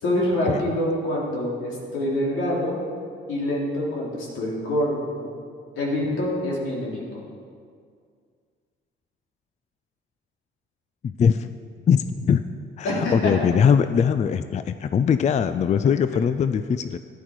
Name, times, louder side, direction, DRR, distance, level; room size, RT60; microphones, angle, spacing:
voice 1, 0.0-2.8 3.3-5.3 5.8-7.2 12.8-13.3, left 1 dB, 85° left, -4 dB, 3.1 m, -26 dB
voice 2, 11.0-11.5 11.9-12.4 12.8-17.0, left 7 dB, 35° left, 11 dB, 0.4 m, -21 dB
12.0 x 10.5 x 4.7 m, 2.2 s
cardioid pair, 90°, 20 cm